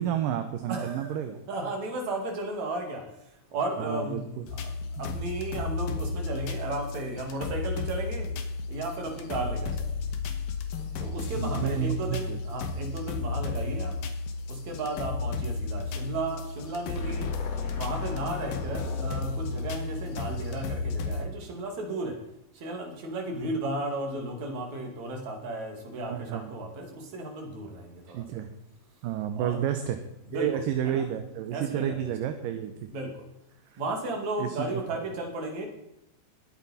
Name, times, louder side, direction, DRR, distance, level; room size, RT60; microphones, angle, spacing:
voice 1, 0.0-1.4 3.8-4.4 5.0-5.1 11.4-12.4 26.1-26.5 28.1-28.5 29.0-30.0 30.3-32.7 33.7-33.8 34.4-34.7 34.9-35.0, right 10 dB, 75° right, 7 dB, 2.3 m, -31 dB
voice 2, 0.7-3.0 3.5-4.7 5.0-8.3 8.7-10.0 11.0-13.9 14.5-17.3 17.7-22.2 22.6-28.2 29.3-29.6 30.3-30.5 30.8-31.0 31.5-32.1 32.9-33.1 33.8-35.7, right 2 dB, 50° right, 2 dB, 3.5 m, -34 dB
sound 1, 4.5-21.3, left 3 dB, 70° left, 2.7 m, -33 dB
sound 2, 17.0-21.3, left 4 dB, 50° left, 2.3 m, -44 dB
21.5 x 8.6 x 4.3 m, 0.85 s
omnidirectional pair, 4.3 m